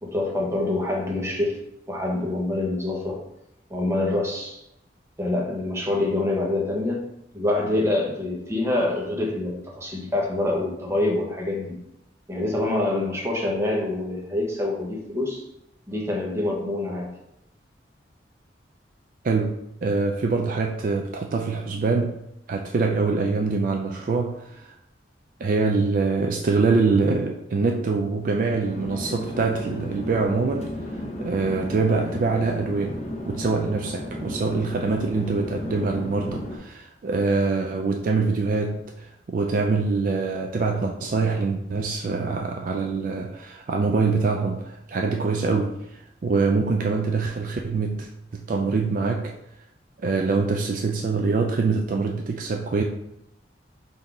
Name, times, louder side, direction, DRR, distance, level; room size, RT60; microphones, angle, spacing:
voice 1, 0.0-1.6 1.9-3.2 3.7-4.6 5.2-7.1 7.3-11.8 12.3-15.4 15.9-17.1, left 2 dB, 15° right, -1 dB, 0.9 m, -26 dB
voice 2, 19.2-22.2 22.5-24.7 25.4-30.7 31.2-33.0 33.3-45.7 46.2-49.3 50.0-52.8, right 4 dB, 50° right, 2 dB, 0.3 m, -24 dB
Conversation / Chatter / Fixed-wing aircraft airplane, 28.6-36.6, left 1 dB, 40° left, 0.7 m, -34 dB
3.8 x 2.7 x 4.6 m, 0.84 s
head